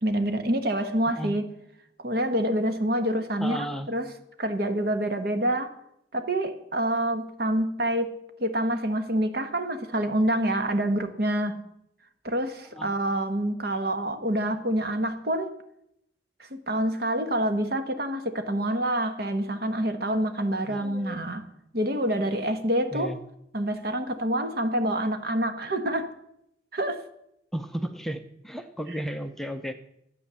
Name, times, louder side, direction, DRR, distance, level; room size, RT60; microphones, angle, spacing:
voice 1, 0.0-1.4 2.0-4.1 4.4-5.7 6.1-11.6 12.2-15.5 16.4-21.4 21.7-23.1 23.5-26.1 26.7-27.0 28.9-29.0, right 1 dB, 60° right, 1.2 m, -27 dB
voice 2, 3.4-3.9 12.7-12.9 20.7-21.2 22.9-23.2 27.5-29.7, equal, ahead, 0.6 m, -34 dB
12.5 x 8.3 x 6.9 m
head